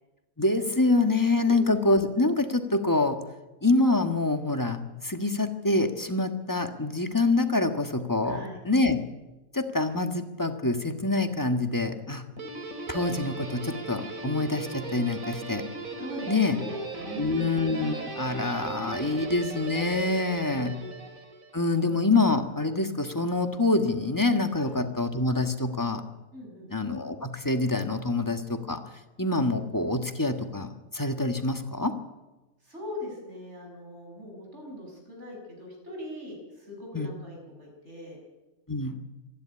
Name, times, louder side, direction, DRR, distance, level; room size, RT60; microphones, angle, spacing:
voice 1, 0.4-3.2 3.6-9.0 9.5-12.2 12.9-15.6 16.3-16.6 17.2-20.7 21.5-26.0 26.7-28.8 29.2-31.9 36.9-37.1 38.7-39.0, left 2 dB, 15° left, 7 dB, 1.4 m, -26 dB
voice 2, 1.4-1.7 8.2-8.6 16.0-17.5 20.4-20.9 24.6-24.7 26.3-26.7 32.6-38.2, left 1 dB, 55° right, 0 dB, 6.7 m, -41 dB
Guitar, 12.4-21.7, right 3 dB, 75° right, 2.8 m, -38 dB
26.0 x 11.0 x 9.8 m, 1.1 s
omnidirectional pair, 1.4 m